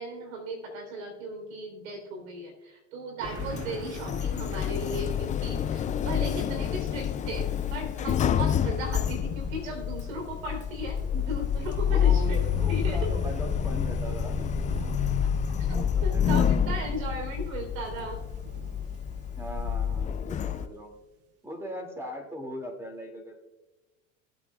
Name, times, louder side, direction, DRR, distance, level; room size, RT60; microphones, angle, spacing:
voice 1, 0.0-12.4 12.7-13.1 15.6-18.2, right 1 dB, 80° right, 3 dB, 3.7 m, -36 dB
Sliding door, 3.2-20.7, left 8 dB, 20° left, 0.3 m, -28 dB
sound 1, 3.2-21.0, right 5 dB, 35° right, 1.1 m, -48 dB
voice 2, 3.6-4.1 11.8-14.9 15.7-16.4 16.8-16.9 19.4-20.9 21.4-23.4, equal, 5° right, 2 dB, 2.4 m, -40 dB
17.5 x 8.8 x 2.4 m, 1.1 s
hypercardioid pair, 90°, 40 cm